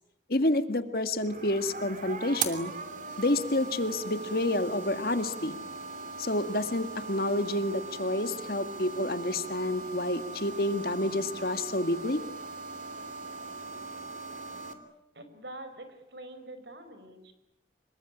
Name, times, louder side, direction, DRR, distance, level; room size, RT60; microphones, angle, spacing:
voice 1, 0.3-2.7 3.2-5.6 6.2-12.2, left 1 dB, 55° left, 10 dB, 1.9 m, -29 dB
sound 1, 1.2-14.7, right 4 dB, 45° right, 3.0 m, -40 dB
voice 2, 15.1-17.3, right 1 dB, 70° right, 10 dB, 5.1 m, -45 dB
26.0 x 23.0 x 10.0 m, 0.84 s
head